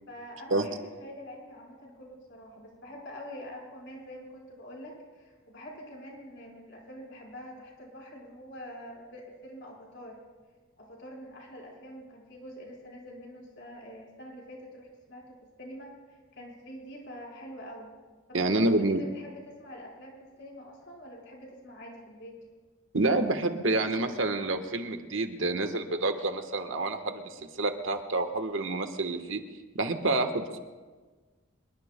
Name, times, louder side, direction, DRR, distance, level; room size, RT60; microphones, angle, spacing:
voice 1, 0.1-10.2 10.8-17.9 18.3-22.4, equal, 55° left, -1 dB, 4.6 m, -46 dB
voice 2, 18.3-19.0 22.9-29.4 29.7-30.6, right 2 dB, 70° right, 6 dB, 1.2 m, -28 dB
25.0 x 21.5 x 2.2 m, 1.4 s
head